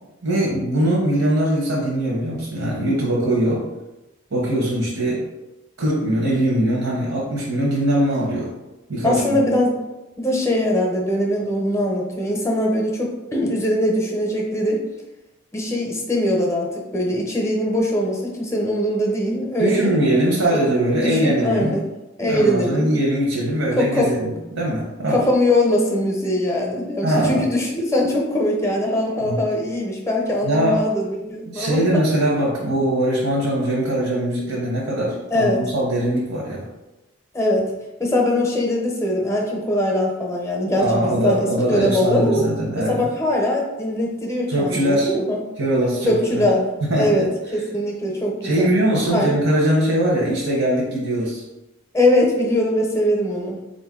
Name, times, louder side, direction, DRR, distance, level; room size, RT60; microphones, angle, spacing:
voice 1, 0.2-3.7 4.3-5.2 5.8-8.5 8.9-9.4 19.6-21.7 22.2-25.2 27.0-27.5 29.2-29.4 30.4-30.8 31.5-36.7 40.8-43.1 44.5-45.1 45.6-46.5 46.9-47.3 48.4-51.4, right 1 dB, 80° right, -4 dB, 0.9 m, -21 dB
voice 2, 9.0-9.8 10.2-14.8 15.5-19.9 21.0-21.8 22.2-22.9 23.8-24.1 25.1-32.0 35.3-35.6 37.3-37.7 38.0-42.5 42.8-45.4 46.0-46.7 47.0-48.7 49.1-49.4 51.9-53.6, left 1 dB, 15° left, 0 dB, 0.6 m, -21 dB
3.9 x 2.6 x 3.6 m, 1.0 s
head